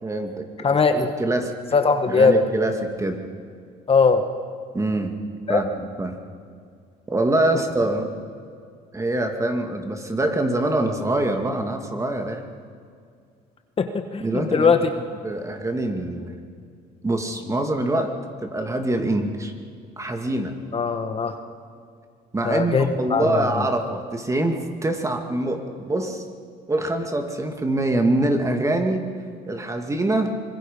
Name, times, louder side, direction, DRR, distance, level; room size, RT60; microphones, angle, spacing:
voice 1, 0.0-0.5 1.0-1.5 2.1-3.2 4.7-5.1 5.5-5.7 6.0-6.2 7.1-8.1 8.9-12.4 14.2-14.7 15.2-16.3 17.0-18.1 18.4-19.5 20.0-20.5 22.3-26.2 26.7-29.1 29.5-30.4, right 1 dB, 20° right, 5 dB, 2.3 m, -24 dB
voice 2, 0.6-1.1 1.7-2.4 3.9-4.2 5.5-5.6 13.8-14.9 20.7-21.3 22.4-23.6, left 5 dB, 35° left, 7 dB, 1.4 m, -20 dB
24.5 x 21.5 x 5.5 m, 2.2 s
cardioid pair, 110°, 17 cm